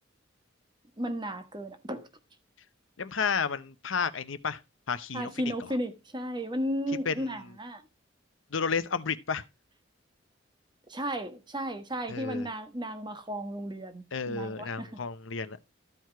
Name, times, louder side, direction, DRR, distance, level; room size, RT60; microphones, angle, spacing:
voice 1, 1.0-2.1 5.1-7.8 10.9-14.9, equal, 25° right, 1.3 m, -34 dB
voice 2, 3.0-4.6 4.9-5.3 7.1-7.3 8.5-9.4 12.1-12.5 14.1-15.6, left 5 dB, 80° left, 0.8 m, -31 dB
13.5 x 4.7 x 4.5 m
head